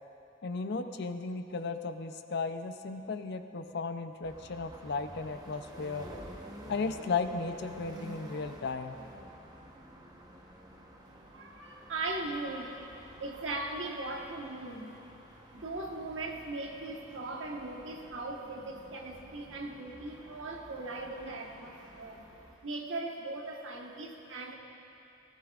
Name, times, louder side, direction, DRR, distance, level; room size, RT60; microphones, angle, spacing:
voice 1, 0.4-6.1 6.7-9.0, left 4 dB, 55° left, 8 dB, 0.5 m, -35 dB
sound 1, 4.2-22.6, equal, 20° right, 1.0 m, -51 dB
voice 2, 11.3-12.9 13.2-14.9 15.5-22.3 22.6-24.5, right 2 dB, 70° right, 0 dB, 1.3 m, -39 dB
18.5 x 14.5 x 2.4 m, 2.8 s
head